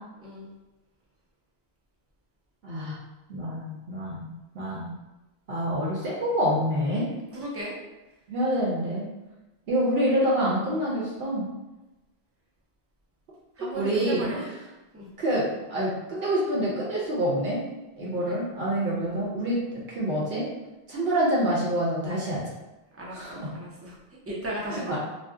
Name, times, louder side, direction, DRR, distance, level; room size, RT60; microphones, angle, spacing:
voice 1, 2.6-3.0 3.3-4.3 4.5-4.9 5.5-7.1 8.3-9.1 9.7-11.5 13.6-14.5 15.2-17.6 18.0-20.5 20.9-22.4 23.1-23.5 24.7-25.0, equal, 70° right, -6 dB, 0.9 m, -27 dB
voice 2, 7.3-7.7 13.6-14.4 14.9-15.1 18.2-18.4 23.0-24.0 24.3-25.0, right 1 dB, 20° right, -5 dB, 0.4 m, -35 dB
2.6 x 2.1 x 3.4 m, 1.0 s
omnidirectional pair, 1.1 m